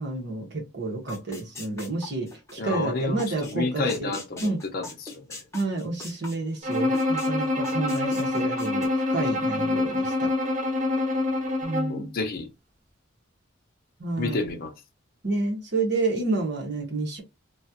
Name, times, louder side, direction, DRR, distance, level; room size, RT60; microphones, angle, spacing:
voice 1, 0.0-4.1 4.4-4.6 5.5-10.3 11.6-12.1 14.0-14.4 15.2-17.2, right 2 dB, 60° right, 1.4 m, -29 dB
sound 1, 1.1-2.8 3.2-3.6 3.9-7.3 7.6-8.9, left 2 dB, 15° left, 1.0 m, -40 dB
voice 2, 2.6-5.4 11.9-12.5 14.2-14.7, left 3 dB, 50° left, 0.7 m, -30 dB
Bowed string instrument, 6.6-12.0, left 2 dB, 40° right, 0.8 m, -26 dB
3.1 x 2.4 x 2.8 m
head